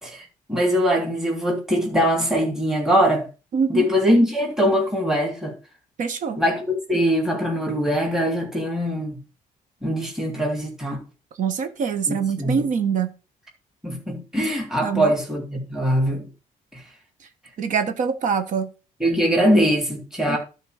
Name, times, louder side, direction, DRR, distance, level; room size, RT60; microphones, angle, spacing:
voice 1, 0.0-3.3 3.7-5.5 6.4-9.2 9.8-11.0 12.1-12.6 13.8-16.2 19.0-20.4, equal, 5° right, 3.0 m, -22 dB
voice 2, 3.5-3.8 6.0-6.4 11.4-13.1 14.8-15.1 17.6-18.7 20.3-20.4, right 6 dB, 60° right, 1.5 m, -24 dB
12.0 x 4.3 x 6.6 m
cardioid pair, 125°, 15 cm